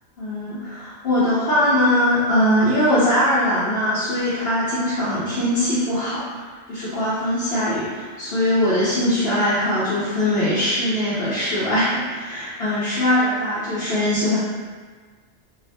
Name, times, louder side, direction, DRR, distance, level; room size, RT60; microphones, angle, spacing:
voice 1, 0.2-6.4 6.7-14.4, left 1 dB, 65° left, -10 dB, 0.9 m, -21 dB
3.2 x 2.5 x 2.7 m, 1.5 s
omnidirectional pair, 1.2 m